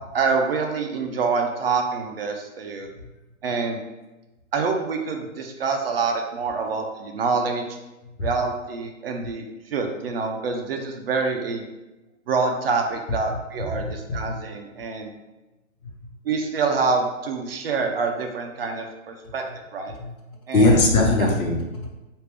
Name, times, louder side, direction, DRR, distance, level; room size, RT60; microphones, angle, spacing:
voice 1, 0.1-2.9 3.4-3.8 4.5-7.6 8.2-11.6 12.3-15.1 16.2-19.4 19.7-19.9 20.5-20.7 21.2-21.3, right 4 dB, 45° right, 3 dB, 0.4 m, -26 dB
voice 2, 20.5-22.0, left 2 dB, 80° left, 0 dB, 1.0 m, -20 dB
3.2 x 2.5 x 3.2 m, 1.0 s
hypercardioid pair, 160°, 41 cm